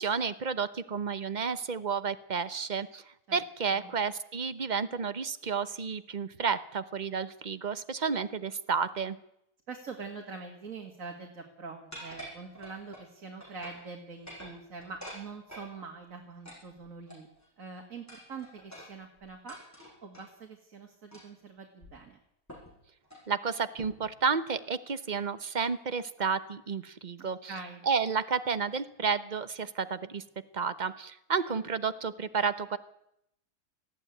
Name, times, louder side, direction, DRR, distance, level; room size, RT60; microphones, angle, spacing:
voice 1, 0.0-3.0 3.3-9.2 23.3-27.5 27.9-30.2 30.5-32.8, right 5 dB, 35° right, 13 dB, 0.9 m, -31 dB
voice 2, 9.7-17.3 17.6-22.2 27.2-27.8, right 4 dB, 55° right, 2 dB, 2.5 m, -44 dB
sound 1, 11.9-13.1 13.4-13.9 14.2-15.7 16.4-17.5 18.1-20.3 21.1-21.4 21.8-21.9 22.5-22.7 23.0-23.3 23.8-24.1, equal, 10° left, 7.8 m, -47 dB
19.5 x 15.0 x 9.3 m, 0.80 s
omnidirectional pair, 1.7 m